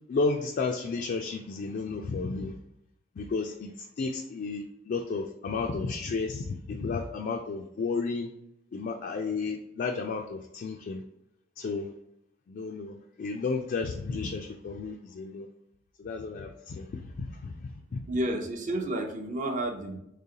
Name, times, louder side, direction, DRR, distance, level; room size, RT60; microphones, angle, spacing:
voice 1, 0.1-2.5 3.2-8.3 8.7-11.0 11.6-11.9 12.5-15.5 16.0-18.0, left 4 dB, 45° left, 3 dB, 0.3 m, -32 dB
voice 2, 18.1-20.0, right 1 dB, 40° right, 4 dB, 0.6 m, -31 dB
3.8 x 3.2 x 2.8 m, 0.81 s
head